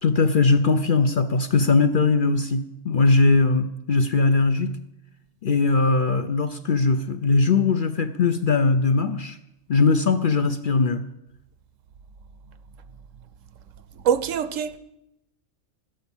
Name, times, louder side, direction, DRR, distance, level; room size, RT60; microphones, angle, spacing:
voice 1, 0.0-4.8 5.4-9.4 9.7-11.0, left 3 dB, 50° left, 0.7 m, -20 dB
voice 2, 13.9-14.8, right 8 dB, 70° right, 1.1 m, -24 dB
13.0 x 10.5 x 7.2 m
omnidirectional pair, 1.4 m